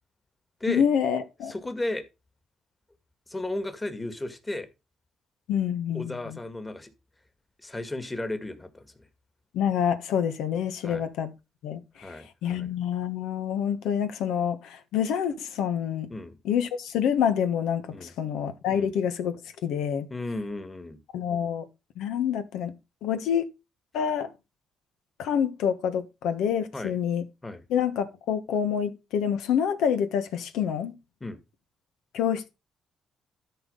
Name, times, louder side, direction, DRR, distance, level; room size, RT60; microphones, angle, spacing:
voice 1, 0.7-1.5 5.5-6.4 9.5-11.3 11.6-12.1 12.4-16.1 16.4-20.1 21.1-21.6 22.0-22.7 23.0-23.5 23.9-24.3 25.2-27.2 27.7-30.9 32.1-32.5, left 8 dB, 85° left, 1.4 m, -27 dB
voice 2, 1.5-2.1 3.3-4.7 5.9-6.9 7.6-9.1 10.8-11.1 12.0-12.7 16.1-16.4 17.9-18.1 18.7-18.9 20.1-21.0 26.7-26.9 27.4-27.6 31.2-31.4, left 2 dB, 15° left, 2.0 m, -34 dB
13.0 x 4.7 x 5.5 m
cardioid pair, 90°, 0 cm